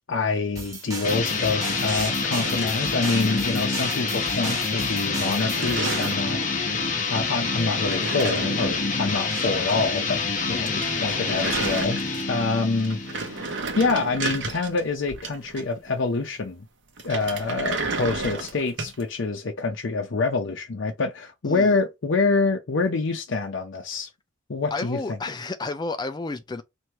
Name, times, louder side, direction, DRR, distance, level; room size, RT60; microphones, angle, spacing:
voice 1, 0.1-6.8 7.1-10.2 10.5-12.0 12.3-13.4 13.7-16.7 17.0-24.1 24.5-25.2, left 3 dB, 70° left, 0.6 m, -26 dB
sound 1, 0.6-6.2, right 2 dB, 15° right, 1.4 m, -37 dB
sound 2, 1.0-13.6, left 4 dB, 40° left, 0.9 m, -27 dB
sound 3, 1.9-4.0 4.3-4.8 5.1-6.3 7.6-9.7 10.0-10.1 10.4-10.5 10.7-12.4 12.8-15.9 17.0-19.0, right 3 dB, 65° right, 0.9 m, -33 dB
voice 2, 10.5-10.8 21.4-21.8 24.7-26.6, left 3 dB, 20° left, 0.4 m, -31 dB
3.1 x 2.7 x 4.4 m
head